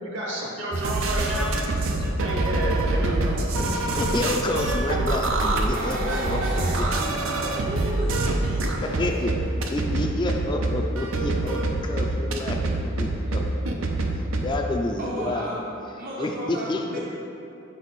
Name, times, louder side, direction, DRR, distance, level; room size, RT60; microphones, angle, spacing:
voice 1, 0.0-1.7 2.2-3.2, right 1 dB, 70° right, -3 dB, 1.4 m, -30 dB
sound 1, 0.7-14.5, right 2 dB, 90° right, 0.6 m, -25 dB
voice 2, 4.0-7.1 8.8-9.3 9.7-13.4 14.1-15.5 16.2-17.0, left 2 dB, 25° left, 2 dB, 0.4 m, -29 dB
voice 3, 5.7-9.0 15.0-15.6 16.0-17.0, right 1 dB, 45° right, -5 dB, 0.6 m, -34 dB
6.0 x 5.1 x 4.1 m, 2.8 s
head